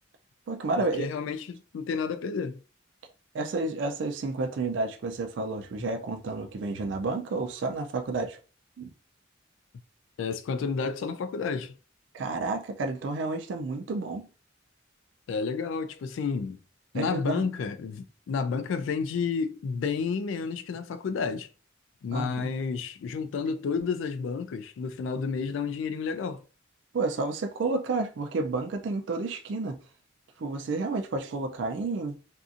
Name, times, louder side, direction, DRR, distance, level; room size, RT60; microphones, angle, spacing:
voice 1, 0.5-1.1 3.3-8.4 8.8-8.9 12.1-14.3 16.9-17.5 22.1-22.5 26.9-29.8 30.4-32.2, right 3 dB, 65° right, 0.4 m, -30 dB
voice 2, 1.0-2.6 10.2-11.7 15.3-16.6 16.9-21.5 22.0-26.4, left 5 dB, 75° left, 0.3 m, -31 dB
2.6 x 2.4 x 2.4 m
head